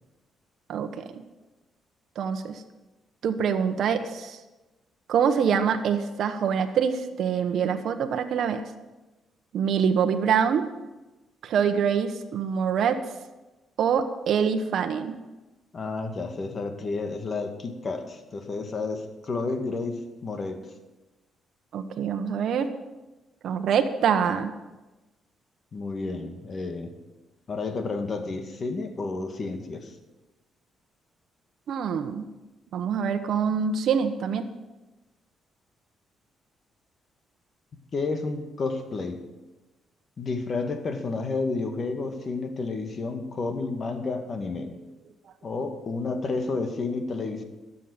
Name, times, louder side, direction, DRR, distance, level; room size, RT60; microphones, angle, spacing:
voice 1, 0.7-1.2 2.2-2.6 3.2-4.4 5.1-8.6 9.5-10.6 11.4-13.0 13.8-15.1 21.7-22.7 23.4-24.5 31.7-32.3 32.7-34.5 45.5-45.6, right 7 dB, 70° right, 7 dB, 1.1 m, -25 dB
voice 2, 15.7-20.6 25.7-26.9 27.5-30.0 37.9-39.2 40.2-44.7 45.4-47.4, left 3 dB, 45° left, 6 dB, 1.9 m, -31 dB
13.0 x 7.5 x 8.9 m, 1.1 s
cardioid pair, 90°, 0 cm